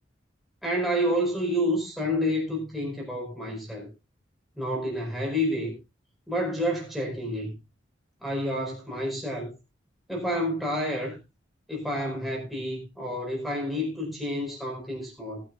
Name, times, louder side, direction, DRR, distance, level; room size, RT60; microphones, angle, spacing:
voice 1, 0.6-3.9 4.6-5.7 6.3-7.5 8.2-9.5 10.1-11.2 11.7-15.4, equal, ahead, 4.8 m, -29 dB
19.5 x 9.8 x 2.5 m
head